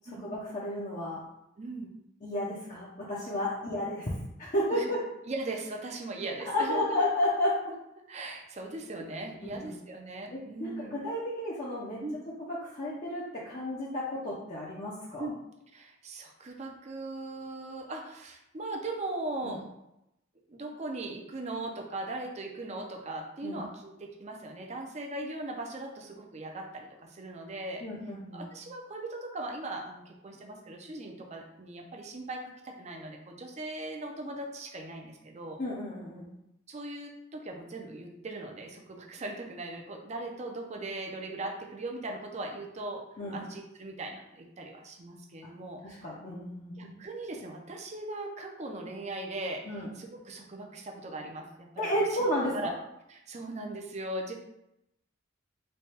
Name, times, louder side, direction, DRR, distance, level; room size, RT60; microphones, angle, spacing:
voice 1, 0.0-1.2 2.2-4.1 4.4-5.0 6.4-7.8 9.4-9.7 10.3-12.0 12.4-15.3 19.4-19.6 23.4-23.6 27.8-28.5 35.6-36.3 43.2-43.4 45.8-46.9 49.7-49.9 51.8-52.7, left 1 dB, 40° left, -6 dB, 0.6 m, -32 dB
voice 2, 1.6-1.9 3.6-3.8 4.7-4.9 5.3-7.0 8.1-10.9 12.0-12.2 15.2-15.3 15.7-19.6 20.5-27.9 28.3-35.6 36.7-43.0 43.3-46.0 46.8-51.9 52.5-52.7 53.1-54.3, right 2 dB, 35° right, 2 dB, 0.5 m, -39 dB
3.2 x 2.2 x 4.2 m, 0.85 s
head